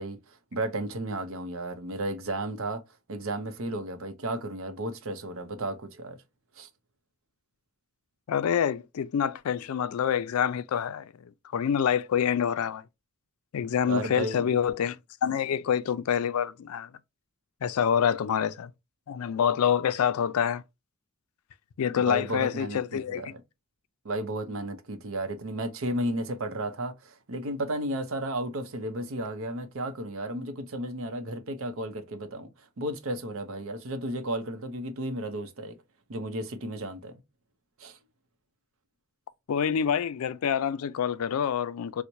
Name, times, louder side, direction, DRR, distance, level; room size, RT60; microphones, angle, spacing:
voice 1, 0.0-2.8 3.1-6.2 6.6-6.7 13.9-14.6 21.9-23.4 24.0-35.8 36.1-37.1 37.8-38.0, right 1 dB, 65° right, 0.6 m, -33 dB
voice 2, 8.3-12.8 13.5-15.0 15.2-16.9 17.6-18.7 19.1-20.6 21.8-23.3 39.5-42.0, left 8 dB, 80° left, 0.4 m, -27 dB
4.4 x 2.1 x 2.6 m
head